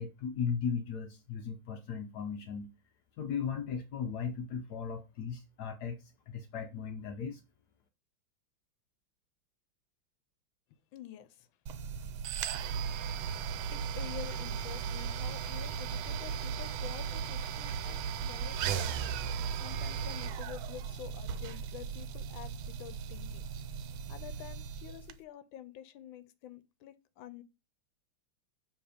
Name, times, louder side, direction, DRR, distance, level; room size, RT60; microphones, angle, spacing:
voice 1, 0.0-2.7 3.2-6.0 6.3-7.4, left 6 dB, 70° left, 1.1 m, -37 dB
voice 2, 10.9-11.5 13.7-23.5 24.1-27.4, left 11 dB, 90° left, 1.4 m, -48 dB
sound 1, 11.7-25.2, right 7 dB, 90° right, 1.4 m, -37 dB
7.2 x 3.4 x 4.9 m
omnidirectional pair, 2.1 m